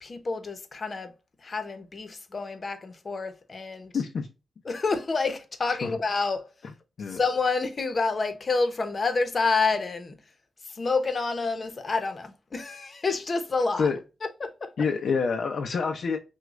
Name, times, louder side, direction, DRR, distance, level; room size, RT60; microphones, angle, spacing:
voice 1, 0.0-1.1 1.4-3.9 4.6-6.5 7.1-10.2 10.7-13.9 14.4-14.7, left 4 dB, 45° left, 0.9 m, -28 dB
voice 2, 3.9-4.3 5.8-5.9 7.0-7.2 13.8-14.0 14.8-16.2, left 5 dB, 75° left, 0.6 m, -27 dB
6.1 x 2.4 x 2.4 m
cardioid pair, 75°, 0 cm